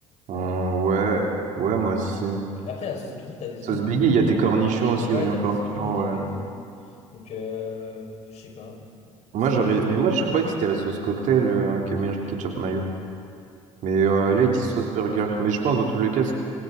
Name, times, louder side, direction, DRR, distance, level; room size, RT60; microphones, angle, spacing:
voice 1, 0.3-1.2 1.6-2.4 3.7-6.2 9.3-12.8 13.8-16.3, right 5 dB, 50° right, 0 dB, 3.4 m, -23 dB
voice 2, 2.7-4.0 5.1-6.6 7.1-9.1 9.5-9.9 14.2-14.8 15.0-15.1, left 5 dB, 45° left, 1 dB, 5.4 m, -36 dB
27.5 x 26.0 x 4.0 m, 2.4 s
figure-of-eight pair, 55°, 16 cm